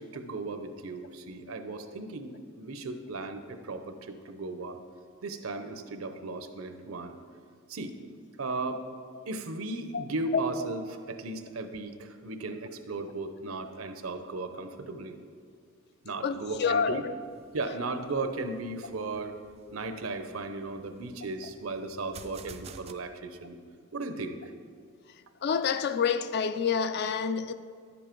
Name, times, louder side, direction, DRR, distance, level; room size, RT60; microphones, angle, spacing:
voice 1, 0.0-4.8 5.2-7.2 7.7-8.0 8.4-8.8 9.3-15.2 16.0-17.0 17.5-19.3 19.7-23.6 23.9-24.5, right 3 dB, 80° right, 0.7 m, -36 dB
voice 2, 16.2-17.1 19.7-19.8 25.4-27.5, left 6 dB, 50° left, 0.4 m, -28 dB
sound 1, 17.2-22.9, right 5 dB, 30° right, 0.3 m, -52 dB
10.5 x 7.2 x 4.5 m
head